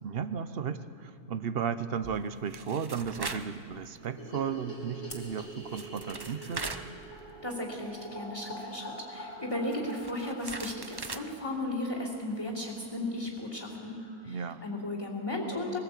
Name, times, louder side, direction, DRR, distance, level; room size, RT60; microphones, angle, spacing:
voice 1, 0.0-6.7 14.3-14.6, right 7 dB, 50° right, 12 dB, 0.8 m, -34 dB
sound 1, 2.0-3.6 4.0-4.1 5.4-5.5 5.7-7.6 7.8-7.9 9.5-11.3, right 3 dB, 30° right, 0.4 m, -40 dB
sound 2, 4.2-12.4 12.6-12.7 13.0-13.1 13.3-13.4 13.7-14.2, right 1 dB, 75° left, 4.1 m, -45 dB
Fire, 5.1-6.2, left 1 dB, 35° left, 2.7 m, -50 dB
voice 2, 7.4-14.0 14.2-15.8, left 1 dB, 20° left, -1 dB, 3.2 m, -35 dB
21.0 x 15.5 x 8.2 m, 2.4 s
omnidirectional pair, 1.6 m